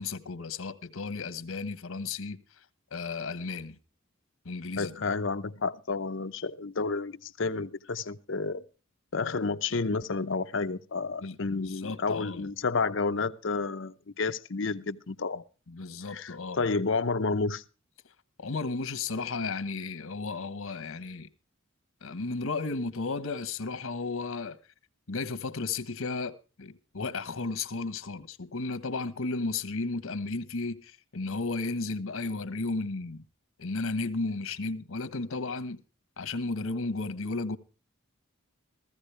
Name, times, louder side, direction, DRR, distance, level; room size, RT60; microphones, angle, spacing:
voice 1, 0.0-2.4 2.9-3.8 4.4-4.9 11.2-12.5 15.7-16.6 18.4-21.3 22.0-24.6 25.1-33.2 33.6-35.8 36.2-37.6, left 3 dB, 85° left, 1.1 m, -34 dB
voice 2, 4.8-8.6 9.1-15.4 16.1-17.6, left 4 dB, 60° left, 0.7 m, -30 dB
15.0 x 15.0 x 3.3 m
head